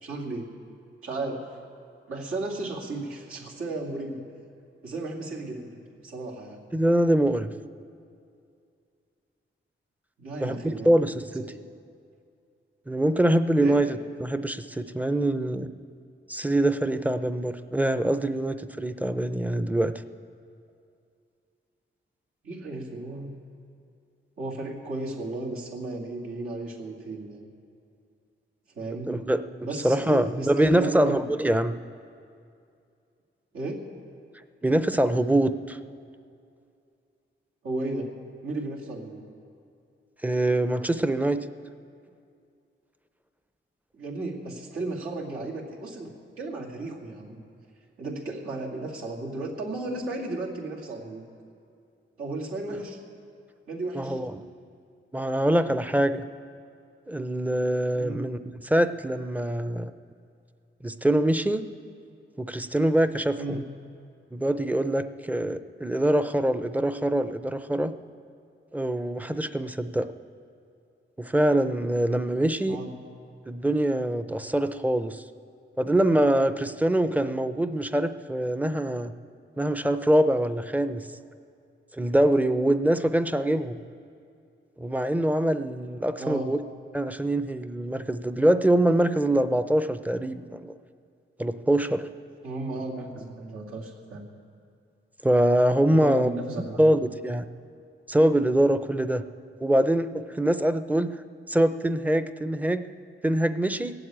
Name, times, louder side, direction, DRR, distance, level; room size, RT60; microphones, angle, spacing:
voice 1, 0.0-0.5 1.0-1.6 2.1-4.2 4.8-6.7 10.2-10.9 11.4-11.6 13.6-13.8 22.4-23.3 24.4-27.5 28.7-29.1 29.6-31.3 33.5-33.9 37.6-38.1 38.4-39.2 43.9-46.1 46.4-47.4 48.0-51.2 52.2-53.0 53.7-54.2 57.9-58.3 63.4-63.7 72.7-72.9 86.2-86.5 92.4-94.3 95.9-96.9, right 2 dB, 90° right, -4 dB, 2.4 m, -34 dB
voice 2, 6.7-7.5 10.4-11.5 12.9-15.7 16.3-19.9 29.1-29.4 29.8-31.8 34.6-35.8 40.2-41.5 52.7-52.8 53.9-54.4 55.1-56.2 57.1-59.9 60.8-61.6 62.4-63.6 64.3-67.9 68.7-70.1 71.2-72.8 73.5-75.2 75.8-79.1 79.6-81.0 81.9-83.8 84.8-86.6 86.9-90.7 91.4-92.1 95.2-96.3 96.8-97.4 98.1-99.2 99.6-101.1 101.5-102.8 103.2-103.9, right 1 dB, 5° right, 11 dB, 0.5 m, -24 dB
17.5 x 7.8 x 8.8 m, 2.4 s
wide cardioid pair, 105°, 21 cm